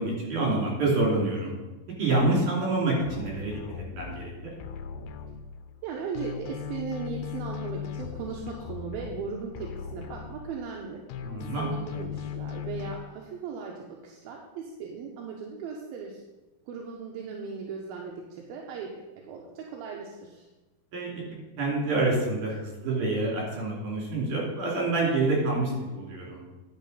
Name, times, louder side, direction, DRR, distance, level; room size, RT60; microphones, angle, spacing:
voice 1, 0.0-1.5 2.0-3.6 4.0-4.5 11.3-12.0 20.9-21.2 21.6-26.4, right 2 dB, 60° right, -3 dB, 4.3 m, -27 dB
sound 1, 3.1-5.8 6.1-10.8 11.1-12.9, left 7 dB, 80° left, 2.4 m, -38 dB
voice 2, 5.8-11.0 11.5-16.2 16.7-20.5, right 5 dB, 80° right, 0 dB, 2.8 m, -37 dB
11.0 x 5.8 x 5.6 m, 1.1 s
omnidirectional pair, 4.3 m